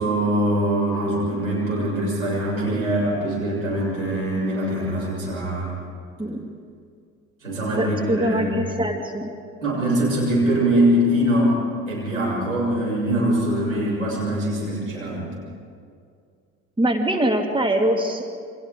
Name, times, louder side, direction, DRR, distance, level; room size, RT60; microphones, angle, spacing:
voice 1, 0.0-5.7 7.4-8.6 9.6-11.6 11.9-15.3, right 1 dB, 90° right, -7 dB, 7.1 m, -23 dB
voice 2, 6.2-6.5 7.8-9.3 16.8-18.2, right 1 dB, 10° right, 4 dB, 2.2 m, -23 dB
29.0 x 23.5 x 3.8 m, 2.2 s
figure-of-eight pair, 55°, 40 cm